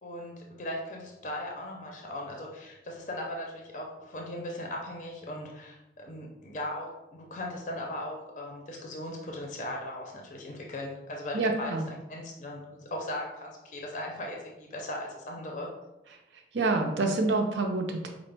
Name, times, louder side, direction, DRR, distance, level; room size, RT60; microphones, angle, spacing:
voice 1, 0.0-15.7, left 1 dB, 40° left, 0 dB, 0.5 m, -38 dB
voice 2, 11.3-11.9 16.5-18.1, right 3 dB, 75° right, 3 dB, 0.5 m, -27 dB
4.8 x 2.0 x 3.3 m, 0.99 s
head